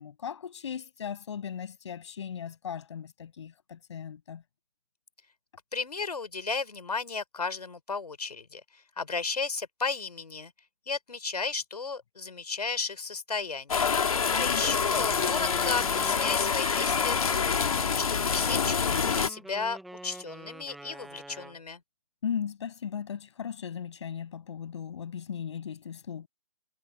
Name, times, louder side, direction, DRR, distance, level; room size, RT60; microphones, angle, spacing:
voice 1, 0.0-4.4 14.4-14.8 22.2-26.3, left 8 dB, 45° left, 6.8 m, -37 dB
voice 2, 5.7-10.5 10.9-21.8, left 4 dB, 90° left, 5.7 m, -34 dB
sound 1, 13.7-19.3, left 6 dB, 65° left, 3.4 m, -26 dB
Wind instrument woodwind instrument, 14.5-21.6, right 1 dB, ahead, 0.3 m, -45 dB
hypercardioid pair, 165°, 20 cm